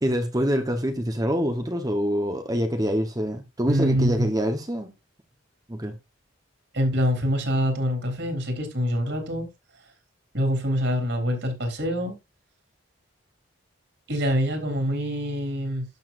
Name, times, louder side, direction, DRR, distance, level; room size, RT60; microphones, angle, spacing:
voice 1, 0.0-4.9 5.7-5.9, equal, 20° right, 1.0 m, -25 dB
voice 2, 3.7-4.3 6.7-9.5 10.3-12.2 14.1-15.9, equal, 60° right, 3.9 m, -25 dB
12.0 x 7.2 x 2.6 m
head